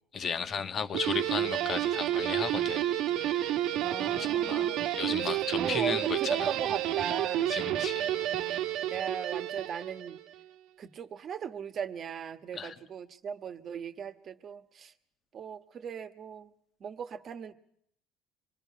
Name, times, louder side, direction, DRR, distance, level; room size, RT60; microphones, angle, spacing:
voice 1, 0.1-3.6 4.0-6.5 7.5-8.2 12.5-12.8, left 6 dB, 35° left, 1.3 m, -35 dB
Guitar, 0.9-10.3, right 12 dB, 65° right, 1.3 m, -30 dB
voice 2, 3.8-4.8 5.1-7.6 8.9-10.2 10.8-14.9 15.3-16.5 16.8-17.5, right 7 dB, 40° right, 1.4 m, -38 dB
26.0 x 22.0 x 5.7 m
cardioid pair, 130°, 0 cm